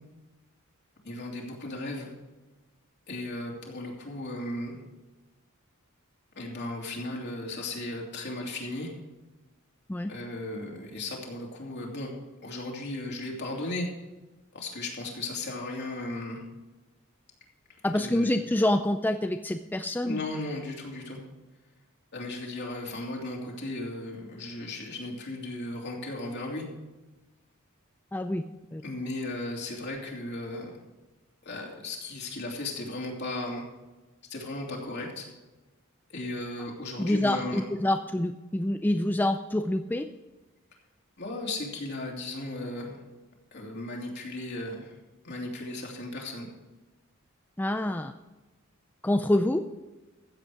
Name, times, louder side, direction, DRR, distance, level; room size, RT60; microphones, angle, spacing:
voice 1, 1.0-2.1 3.1-4.8 6.4-8.9 10.1-12.1 12.4-13.9 14.5-16.4 17.9-18.3 20.0-21.2 22.1-26.7 28.8-30.8 31.4-33.6 34.3-35.3 36.1-37.6 41.2-43.0 43.5-44.9 45.2-46.5, left 2 dB, 55° left, -1 dB, 2.9 m, -36 dB
voice 2, 17.8-20.2 28.1-28.4 28.7-28.8 37.0-40.0 47.6-48.1 49.0-49.6, left 1 dB, 10° left, 7 dB, 0.4 m, -26 dB
14.5 x 8.1 x 4.9 m, 1.1 s
head